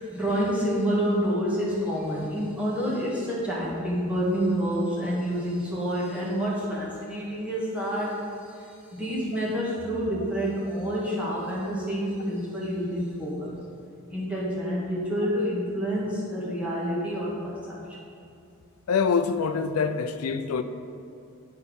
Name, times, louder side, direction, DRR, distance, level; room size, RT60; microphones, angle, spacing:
voice 1, 0.0-8.2 8.5-13.6 14.1-18.1, equal, 5° right, -7 dB, 1.8 m, -28 dB
voice 2, 18.9-20.6, left 5 dB, 85° left, 9 dB, 0.4 m, -25 dB
8.3 x 4.5 x 5.2 m, 2.6 s
head